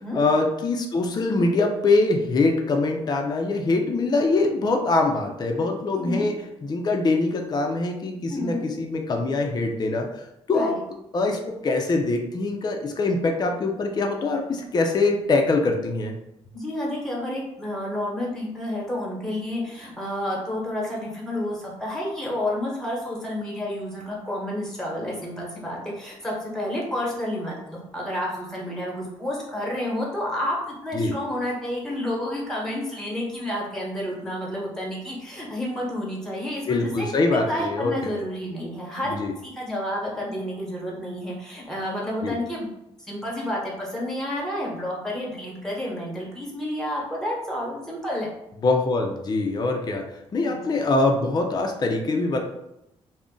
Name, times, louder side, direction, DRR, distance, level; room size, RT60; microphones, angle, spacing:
voice 1, 0.1-6.3 6.6-10.1 10.5-10.8 11.1-16.2 30.9-31.1 36.7-38.2 39.1-39.3 42.2-42.4 48.6-50.0 50.3-52.4, left 3 dB, 35° left, 3 dB, 0.5 m, -23 dB
voice 2, 5.9-6.2 8.3-8.6 10.5-10.8 16.5-37.1 37.5-39.2 39.4-42.7 43.0-48.3 50.4-50.6, left 1 dB, 5° left, -3 dB, 1.1 m, -30 dB
2.4 x 2.1 x 3.7 m, 0.84 s
cardioid pair, 85°, 12 cm